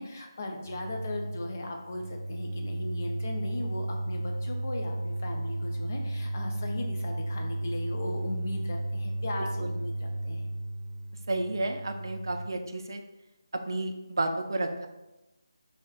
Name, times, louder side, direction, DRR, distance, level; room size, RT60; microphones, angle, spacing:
voice 1, 0.0-10.5, left 2 dB, 30° left, 2 dB, 0.4 m, -38 dB
sound 1, 0.6-12.5, right 1 dB, 70° right, 0.7 m, -34 dB
voice 2, 11.3-13.0 13.7-14.9, right 2 dB, 55° right, 5 dB, 0.3 m, -31 dB
5.0 x 2.0 x 2.3 m, 1.0 s
figure-of-eight pair, 175°, 2 cm